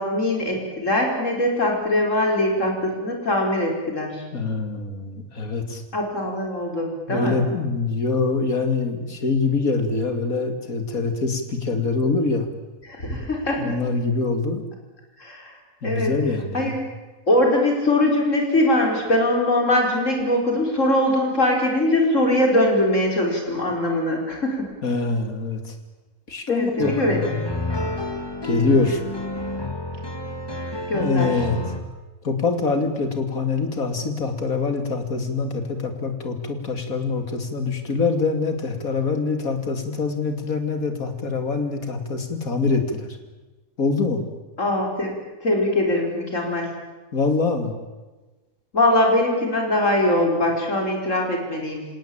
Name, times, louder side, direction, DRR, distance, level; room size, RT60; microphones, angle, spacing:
voice 1, 0.0-4.2 5.9-7.4 12.9-13.7 15.2-15.5 15.8-16.1 16.5-16.8 17.3-24.7 26.5-27.2 30.9-31.3 44.6-45.1 45.4-46.7 48.7-51.9, left 1 dB, 60° left, 1 dB, 5.6 m, -22 dB
voice 2, 4.3-5.8 7.1-12.5 13.6-14.6 15.8-16.7 24.8-25.7 26.3-27.4 28.4-29.0 30.9-31.6 32.2-43.1 43.8-44.3 47.1-47.8, left 4 dB, 85° left, 6 dB, 3.1 m, -24 dB
sound 1, 26.8-31.8, left 2 dB, 15° left, 2.2 m, -30 dB
27.5 x 17.5 x 8.9 m, 1.2 s
omnidirectional pair, 1.4 m